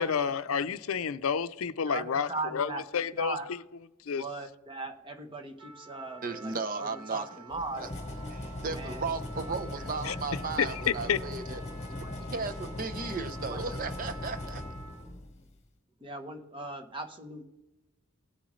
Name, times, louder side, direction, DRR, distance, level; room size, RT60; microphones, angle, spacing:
voice 1, 0.0-3.6 4.0-4.2 10.0-10.2 10.6-11.2, left 7 dB, 75° left, 0.5 m, -30 dB
voice 2, 1.9-2.8 3.1-3.5 4.2-7.8 8.7-9.0 10.1-10.2 12.0-12.1 13.5-13.6 16.0-17.4, right 3 dB, 25° right, 1.1 m, -38 dB
Trumpet, 5.6-15.1, right 2 dB, 90° right, 3.3 m, -49 dB
voice 3, 6.2-7.3 7.8-7.9 8.3-11.6 12.3-14.6, right 4 dB, 40° right, 0.7 m, -35 dB
sound 1, 7.5-15.5, left 1 dB, 35° left, 1.4 m, -39 dB
18.5 x 7.7 x 3.2 m
head